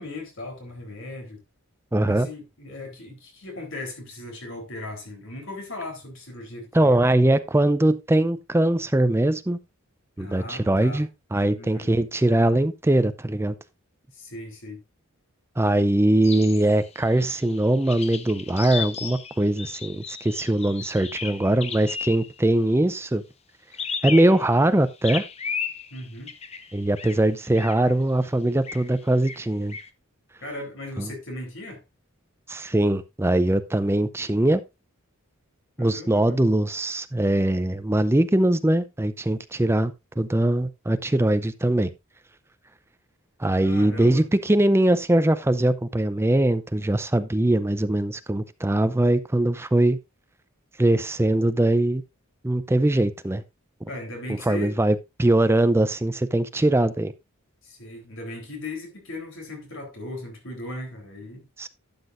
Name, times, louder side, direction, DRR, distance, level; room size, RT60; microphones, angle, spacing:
voice 1, 0.0-1.4 2.0-7.1 10.2-11.0 11.5-11.9 14.1-14.8 15.8-15.9 25.9-26.3 30.4-31.8 35.8-36.4 43.6-44.2 53.9-54.8 57.6-61.4, left 2 dB, 60° left, 3.6 m, -37 dB
voice 2, 1.9-2.3 6.7-9.6 10.2-13.5 15.6-23.2 24.0-25.2 26.7-29.8 31.0-31.1 32.5-34.6 35.8-41.9 43.4-50.0 50.8-52.0 52.4-53.4 54.3-57.1 61.6-61.7, right 1 dB, 10° right, 0.5 m, -21 dB
sound 1, 16.2-22.5 23.7-24.7 25.0-27.2 27.6-27.8 28.6-28.9 29.2-29.9, left 6 dB, 30° left, 0.8 m, -35 dB
12.0 x 8.2 x 2.5 m
head